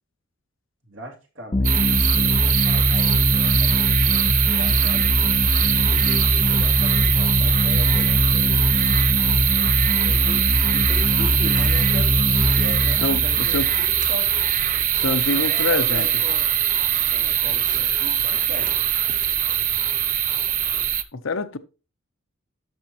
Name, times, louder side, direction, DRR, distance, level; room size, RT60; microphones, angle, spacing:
voice 1, 0.9-5.1 5.9-8.7 9.9-10.4 10.7-14.3 14.9-16.5 17.1-18.8, equal, 70° right, 3.0 m, -38 dB
sound 1, 1.5-14.8, left 1 dB, 25° left, 0.6 m, -22 dB
sound 2, 1.6-21.0, right 10 dB, 40° right, 0.6 m, -21 dB
voice 2, 13.0-13.7 15.0-16.1 21.1-21.6, left 3 dB, 80° left, 0.9 m, -25 dB
12.0 x 6.3 x 3.0 m
head